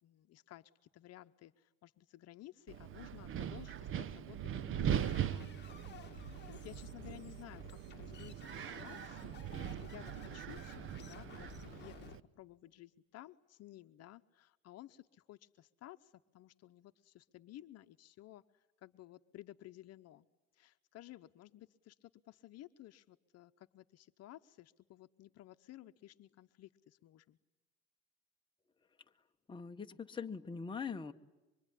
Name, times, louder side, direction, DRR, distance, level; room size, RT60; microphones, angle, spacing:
voice 1, 0.0-20.3 20.5-27.4, left 14 dB, 60° left, 9 dB, 0.9 m, -56 dB
Wind, 2.7-12.2, right 9 dB, 45° right, 0.8 m, -41 dB
sound 1, 5.0-12.2, left 9 dB, 35° left, 1.5 m, -56 dB
voice 2, 29.5-31.1, left 5 dB, 15° left, 4 dB, 1.2 m, -42 dB
25.5 x 23.5 x 10.0 m, 1.1 s
cardioid pair, 130°, 29 cm